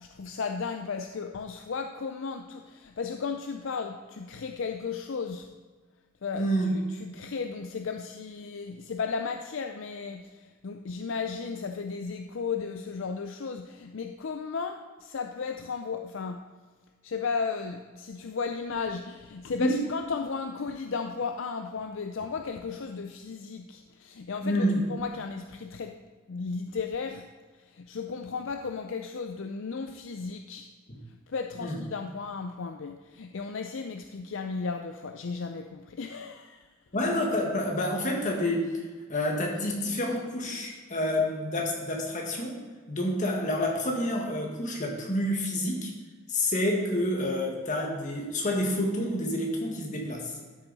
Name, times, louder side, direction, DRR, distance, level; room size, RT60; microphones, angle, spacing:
voice 1, 0.0-5.5 6.2-16.4 17.0-26.0 26.3-27.3 27.6-30.7 31.3-36.7, left 5 dB, 60° left, 5 dB, 0.5 m, -35 dB
voice 2, 6.3-6.7 19.6-19.8 24.4-24.8 31.6-31.8 36.9-38.7 39.1-42.6 42.9-45.9 46.3-50.3, left 1 dB, 35° left, 0 dB, 1.7 m, -28 dB
12.5 x 6.9 x 4.1 m, 1.4 s
head